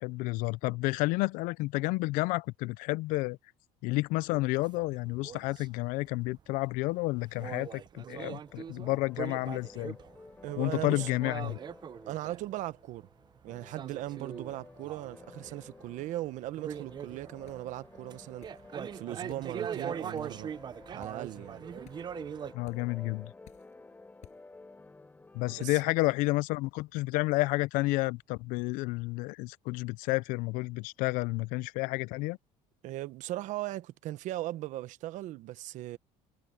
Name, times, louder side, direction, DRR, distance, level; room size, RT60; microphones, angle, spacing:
voice 1, 0.0-3.4 3.8-10.0 10.6-11.6 22.5-23.3 25.3-32.4, left 21 dB, 75° left, 0.5 m, -30 dB
sound 1, 4.3-13.0 13.2-16.3 16.5-22.5, right 8 dB, 30° right, 0.7 m, -41 dB
sound 2, 8.5-25.9, left 3 dB, 15° left, 4.8 m, -53 dB
voice 2, 10.4-11.1 12.1-13.1 13.4-18.5 18.9-20.5 20.9-21.6 25.6-25.8 32.8-36.0, right 15 dB, 65° right, 1.2 m, -38 dB
sound 3, 17.5-17.7 18.4-18.6 19.3-19.5 20.2-20.4 21.0-21.2 21.8-22.1 22.6-22.8 23.4-23.7 24.2-24.4, left 13 dB, 55° left, 7.3 m, -56 dB
cardioid pair, 125°, 14 cm